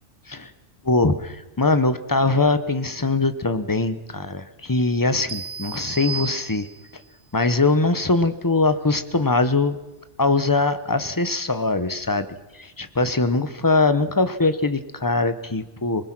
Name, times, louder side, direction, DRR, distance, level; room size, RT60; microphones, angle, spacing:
voice 1, 0.8-6.7 7.3-9.8 10.2-12.3 12.6-16.1, left 3 dB, 20° left, 11 dB, 0.8 m, -22 dB
sound 1, 5.3-7.0, right 6 dB, 45° right, 1.0 m, -33 dB
25.5 x 20.0 x 6.0 m, 1.1 s
omnidirectional pair, 1.2 m